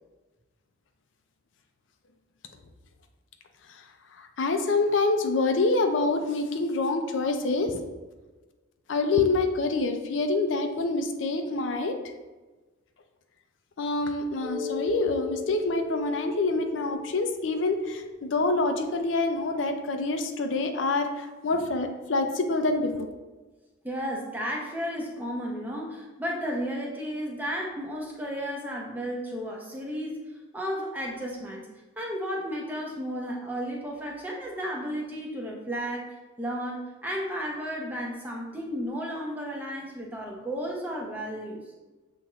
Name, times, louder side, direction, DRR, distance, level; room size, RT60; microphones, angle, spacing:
voice 1, 4.2-7.8 8.9-12.0 13.8-23.1, left 3 dB, 75° left, 6 dB, 0.5 m, -26 dB
Mallet percussion, 14.4-18.8, left 6 dB, 25° right, 1.0 m, -37 dB
voice 2, 23.8-30.2 30.5-31.6 32.0-36.1 36.4-41.6, equal, 10° right, -2 dB, 0.6 m, -33 dB
7.0 x 3.0 x 2.4 m, 1.2 s
head